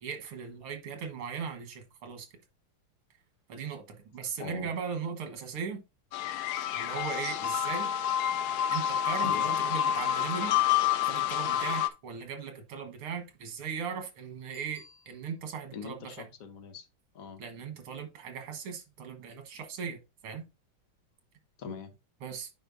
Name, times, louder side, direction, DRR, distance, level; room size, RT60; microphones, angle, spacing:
voice 1, 0.0-2.3 3.5-5.8 6.7-7.9 8.7-10.6 11.0-16.0 17.4-20.0 20.2-20.4 22.2-22.5, right 6 dB, 85° right, 2.3 m, -38 dB
voice 2, 4.4-4.7 9.2-9.6 15.7-16.9 17.1-17.4 21.6-22.0, left 6 dB, 50° left, 1.1 m, -41 dB
sound 1, 6.1-11.9, left 11 dB, 80° left, 0.8 m, -28 dB
Bicycle bell, 14.5-15.7 21.1-21.2, left 1 dB, ahead, 2.8 m, -58 dB
8.8 x 5.4 x 2.6 m
omnidirectional pair, 2.3 m